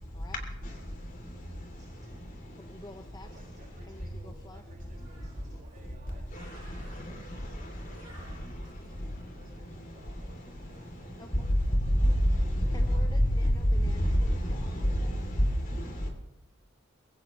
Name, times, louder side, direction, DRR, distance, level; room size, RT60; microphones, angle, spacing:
Bird, 0.7-11.7, equal, 20° right, 7.8 m, -58 dB
voice 1, 2.6-3.4 3.9-4.6 11.2-11.5 12.7-15.1, left 2 dB, 20° left, 0.7 m, -50 dB
voice 2, 3.2-12.0 12.3-13.1, right 2 dB, 45° right, 5.7 m, -58 dB
voice 3, 12.4-13.2 13.8-16.1, equal, 45° left, 3.1 m, -27 dB
21.0 x 16.5 x 3.2 m
head